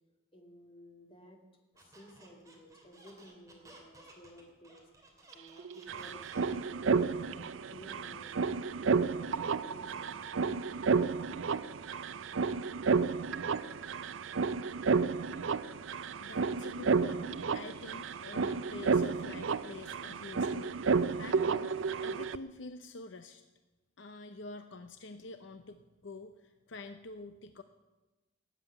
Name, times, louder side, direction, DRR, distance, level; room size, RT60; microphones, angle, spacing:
voice 1, 0.3-1.4 1.9-4.9 5.3-10.8, equal, 25° left, 1 dB, 2.5 m, -55 dB
Squeak, 1.7-6.8, right 2 dB, 15° right, 2.9 m, -57 dB
sound 1, 5.3-5.4 5.6-22.4, right 5 dB, 75° right, 0.5 m, -32 dB
voice 2, 16.2-21.7 22.0-23.4 24.0-27.6, left 3 dB, 65° left, 8 dB, 0.7 m, -47 dB
18.0 x 7.8 x 9.0 m, 1.1 s
head